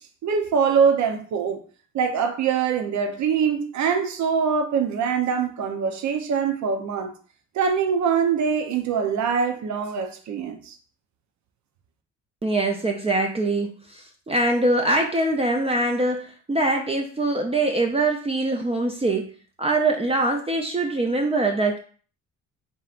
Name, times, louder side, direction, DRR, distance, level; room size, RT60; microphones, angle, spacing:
voice 1, 0.2-1.6 1.9-7.1 7.5-10.8, right 6 dB, 70° right, 0.8 m, -23 dB
voice 2, 12.4-19.3 19.6-21.8, right 2 dB, 20° right, 0.5 m, -23 dB
5.4 x 2.9 x 2.5 m
cardioid pair, 90°, 30 cm